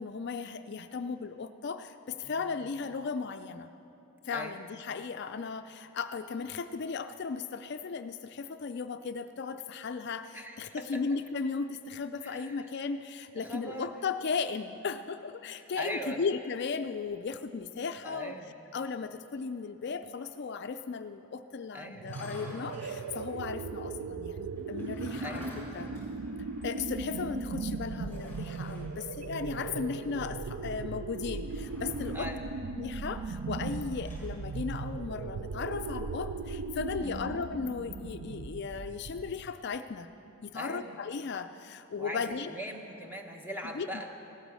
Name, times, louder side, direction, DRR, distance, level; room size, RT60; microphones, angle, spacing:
voice 1, 0.0-3.7 4.2-18.3 18.7-25.9 26.6-32.3 32.7-40.1 40.4-42.5 43.6-44.1, left 5 dB, 50° left, 9 dB, 0.4 m, -36 dB
voice 2, 2.1-2.7 4.3-4.6 10.3-11.0 12.2-12.7 13.3-13.9 15.5-16.2 18.0-18.6 21.7-22.2 25.2-25.4 29.5-30.2 32.1-32.4 37.0-37.4 40.5-41.0 42.0-44.1, equal, 10° right, 2 dB, 1.1 m, -41 dB
sound 1, 22.0-23.0 24.5-26.8 27.1-27.2 28.0-28.9 31.4-32.4 33.7-34.3, equal, 10° left, 4.1 m, -49 dB
sound 2, 22.0-39.5, right 4 dB, 90° right, 0.5 m, -38 dB
16.0 x 13.5 x 6.3 m, 2.9 s
head